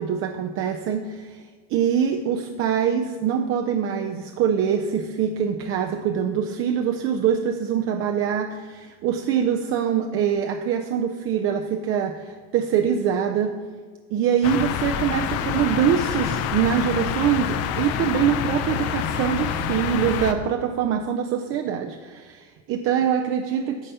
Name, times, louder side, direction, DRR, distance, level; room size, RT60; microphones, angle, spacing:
voice 1, 0.0-1.4 1.7-13.6 14.1-23.9, right 8 dB, 40° right, 6 dB, 0.4 m, -24 dB
sound 1, 14.4-20.3, left 8 dB, 45° left, 0.5 m, -27 dB
9.0 x 4.1 x 5.5 m, 1.6 s
cardioid pair, 135°, 34 cm